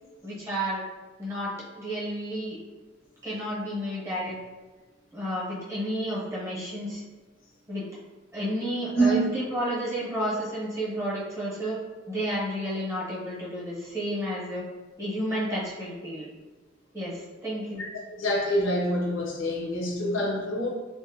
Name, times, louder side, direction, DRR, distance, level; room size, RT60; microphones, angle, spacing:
voice 1, 0.2-0.8 1.2-2.6 3.2-4.4 5.1-7.0 7.7-7.8 8.3-11.8 12.1-14.6 15.0-16.3 16.9-17.8, equal, 15° right, -8 dB, 0.8 m, -31 dB
voice 2, 18.1-20.7, right 1 dB, 90° left, -2 dB, 0.6 m, -26 dB
2.5 x 2.1 x 2.6 m, 1.2 s
head